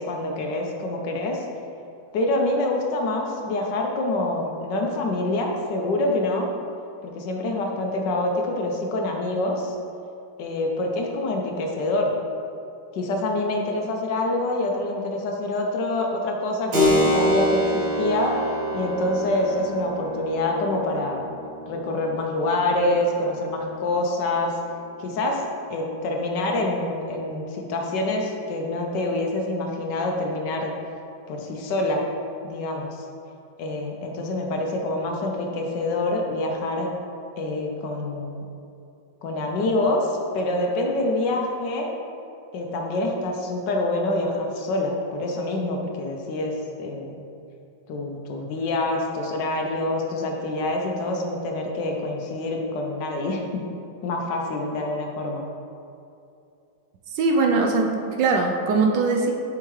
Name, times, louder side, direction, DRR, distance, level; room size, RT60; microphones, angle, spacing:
voice 1, 0.0-1.5 2.1-6.5 7.0-9.8 10.4-12.1 12.9-18.3 18.7-21.3 21.7-24.5 25.0-25.4 25.7-30.7 31.3-32.0 32.4-33.0 33.6-36.9 37.4-38.4 39.2-41.9 42.5-46.5 46.8-47.1 47.9-53.6 54.0-55.4, left 2 dB, 70° left, 1 dB, 1.3 m, -26 dB
Keyboard (musical), 16.7-24.9, equal, 90° right, 2.2 m, -27 dB
voice 2, 57.1-59.3, right 3 dB, 75° right, 2 dB, 1.2 m, -21 dB
7.2 x 5.6 x 3.1 m, 2.6 s
omnidirectional pair, 2.1 m